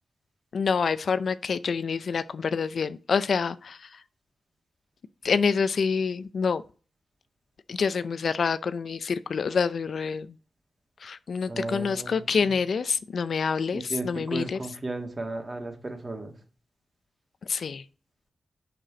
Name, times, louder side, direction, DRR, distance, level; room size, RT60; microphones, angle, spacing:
voice 1, 0.5-3.8 5.2-6.6 7.7-10.3 11.0-14.6 17.5-17.8, left 5 dB, 70° left, 0.4 m, -27 dB
voice 2, 11.5-12.5 13.7-16.4, right 2 dB, 35° right, 1.9 m, -35 dB
6.6 x 6.0 x 4.9 m
cardioid pair, 70°, 0 cm